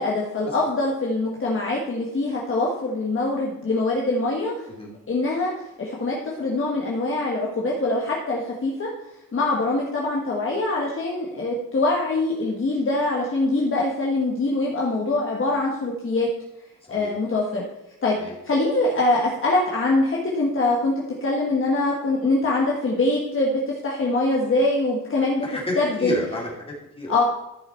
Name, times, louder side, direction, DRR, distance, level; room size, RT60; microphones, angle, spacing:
voice 1, 0.0-4.5 5.1-5.5 5.8-8.9 9.3-16.3 16.9-17.6 18.0-18.1 18.4-20.9 21.2-25.5 25.8-26.2 27.1-27.2, left 2 dB, 40° left, -3 dB, 1.4 m, -23 dB
voice 2, 25.4-27.1, left 1 dB, 15° left, -4 dB, 3.0 m, -31 dB
13.5 x 5.7 x 4.4 m, 0.92 s
wide cardioid pair, 160°, 34 cm